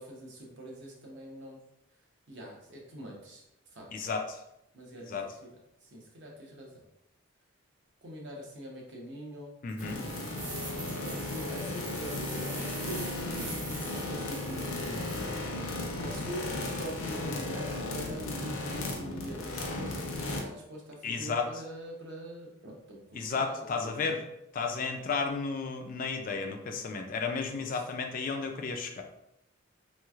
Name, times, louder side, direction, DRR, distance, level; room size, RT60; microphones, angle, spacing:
voice 1, 0.0-1.6 2.3-3.4 3.7-4.1 4.7-5.5 5.8-6.7 8.0-9.5 10.0-10.4 10.9-15.0 16.0-16.5 16.7-23.5 23.8-24.2 27.7-27.8, equal, 55° right, -1 dB, 0.8 m, -44 dB
voice 2, 3.9-4.4 5.1-5.3 9.6-10.0 21.0-21.5 23.1-24.2 24.5-29.0, left 4 dB, 40° left, 4 dB, 0.3 m, -33 dB
sound 1, 9.7-15.3, right 3 dB, 90° right, 1.0 m, -44 dB
sound 2, 9.8-20.4, left 2 dB, 85° left, 0.6 m, -35 dB
3.1 x 3.0 x 2.3 m, 0.83 s
head